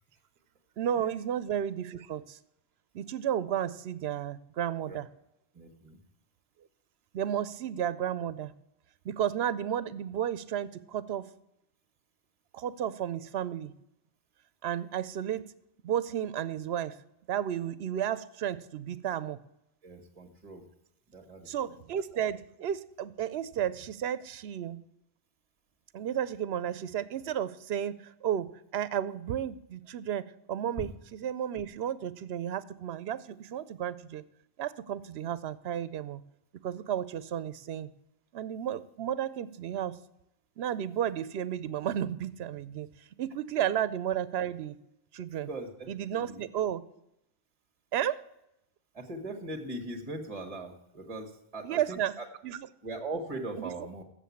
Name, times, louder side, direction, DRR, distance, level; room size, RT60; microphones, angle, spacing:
voice 1, 0.8-2.4 2.9-5.1 7.1-8.5 9.0-11.3 12.5-13.7 14.6-15.5 15.8-17.0 17.3-19.4 21.5-24.8 25.9-34.2 34.6-36.2 36.6-37.9 38.3-40.0 40.6-42.9 43.2-44.8 45.1-45.5 45.9-46.8 47.9-48.2 51.6-52.1 52.4-52.6 53.6-53.7, right 10 dB, 80° right, 16 dB, 0.8 m, -33 dB
voice 2, 5.5-6.0 19.8-20.7 21.1-21.8 45.5-46.4 48.9-52.3 52.8-54.0, right 2 dB, 35° right, 2 dB, 1.3 m, -40 dB
7.6 x 7.3 x 8.3 m, 0.84 s
omnidirectional pair, 1.1 m